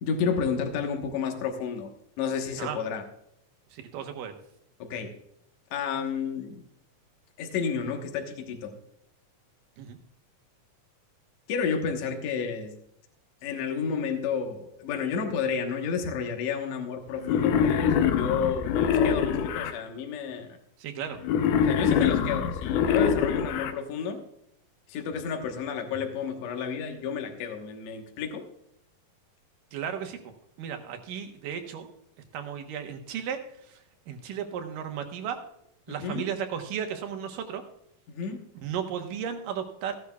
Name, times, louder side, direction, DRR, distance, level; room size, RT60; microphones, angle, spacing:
voice 1, 0.0-1.9 2.2-3.0 4.8-5.1 5.7-6.6 7.4-8.8 11.5-12.7 13.4-20.6 21.6-24.2 24.9-28.5 35.9-36.3 38.1-38.4, left 6 dB, 60° left, 4 dB, 2.4 m, -31 dB
voice 2, 3.7-4.3 9.8-10.0 20.8-21.2 29.7-30.2 30.6-31.9 32.3-33.8 34.1-35.4 35.9-37.6 38.6-40.0, right 8 dB, 85° right, 5 dB, 2.9 m, -34 dB
Wild animals, 17.2-19.7 21.2-23.7, left 7 dB, 75° left, 2.2 m, -24 dB
15.5 x 11.0 x 2.3 m, 0.77 s
omnidirectional pair, 3.8 m